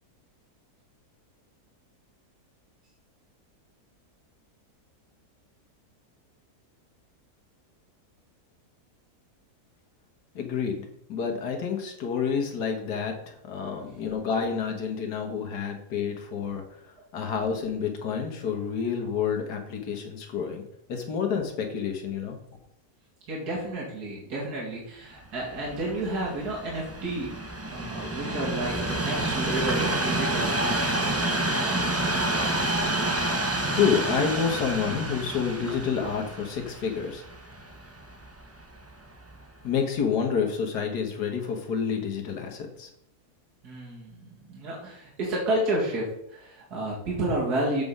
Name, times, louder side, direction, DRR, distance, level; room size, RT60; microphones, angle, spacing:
voice 1, 10.4-16.6 17.1-20.6 20.9-22.4 33.7-37.2 39.6-42.9, left 6 dB, 85° left, 3 dB, 1.9 m, -29 dB
voice 2, 13.6-14.0 23.3-27.3 27.7-32.1 43.6-47.8, right 1 dB, 75° right, -4 dB, 2.5 m, -31 dB
Train, 25.4-38.6 39.3-39.4, right 1 dB, 20° right, 0.4 m, -29 dB
7.7 x 5.5 x 5.4 m, 0.73 s
omnidirectional pair, 1.7 m